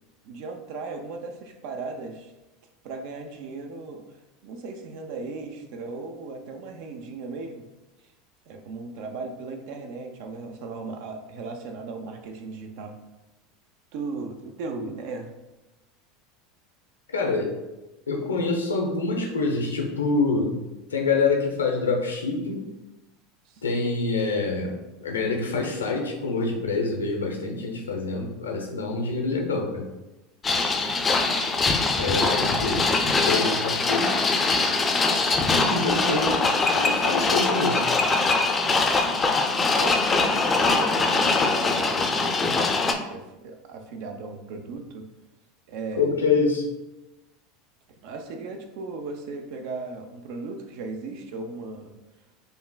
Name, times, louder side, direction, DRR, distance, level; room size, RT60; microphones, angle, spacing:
voice 1, 0.2-2.3 2.8-7.7 8.5-13.0 13.9-15.3 23.5-23.6 30.6-31.2 38.6-38.9 39.8-42.8 43.1-45.0 45.7-46.1 48.0-51.9, right 3 dB, 60° right, 5 dB, 0.5 m, -37 dB
voice 2, 17.1-17.5 18.1-20.6 20.9-22.6 23.6-24.8 25.0-29.9 32.0-34.1 35.5-37.8 46.0-46.6, left 3 dB, 85° left, 1 dB, 0.6 m, -26 dB
sound 1, 30.4-42.9, left 3 dB, 25° left, 0.4 m, -22 dB
5.1 x 2.5 x 2.2 m, 1.0 s
hypercardioid pair, 80°, 0 cm